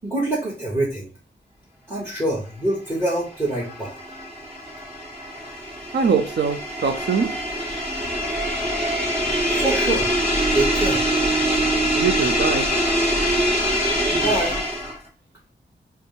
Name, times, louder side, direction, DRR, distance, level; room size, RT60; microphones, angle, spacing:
voice 1, 0.0-1.1 1.9-4.0 9.5-10.1 10.5-11.0 14.1-14.6, right 1 dB, 15° right, 1.2 m, -25 dB
sound 1, 3.2-15.1, equal, 30° right, 1.6 m, -24 dB
voice 2, 5.9-7.4 11.9-12.7, right 5 dB, 65° right, 0.6 m, -22 dB
4.0 x 2.1 x 3.9 m
wide cardioid pair, 130°, 19 cm